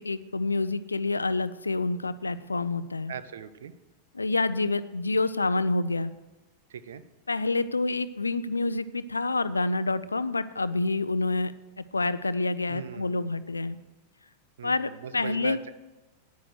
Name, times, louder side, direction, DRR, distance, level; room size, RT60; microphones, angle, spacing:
voice 1, 0.0-3.1 4.2-6.1 7.3-11.5 11.9-13.8 14.6-15.6, left 3 dB, 80° left, 15 dB, 0.5 m, -28 dB
voice 2, 3.1-3.7 6.7-7.0 12.7-13.4 14.6-15.7, right 8 dB, 65° right, 13 dB, 0.7 m, -40 dB
9.9 x 9.5 x 6.4 m, 1.1 s
figure-of-eight pair, 90°, 0 cm